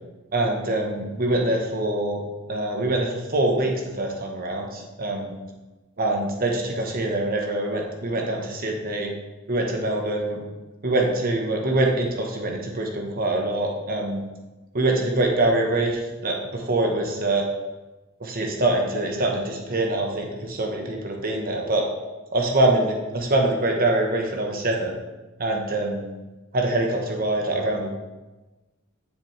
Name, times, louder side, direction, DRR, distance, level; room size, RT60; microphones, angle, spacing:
voice 1, 0.3-2.2 2.5-5.3 6.0-9.1 9.5-10.4 10.8-14.2 14.7-17.5 18.2-21.8 22.3-24.9 25.4-26.1 26.5-27.9, right 2 dB, 45° right, 1 dB, 1.2 m, -24 dB
7.4 x 6.9 x 3.3 m, 1.1 s
head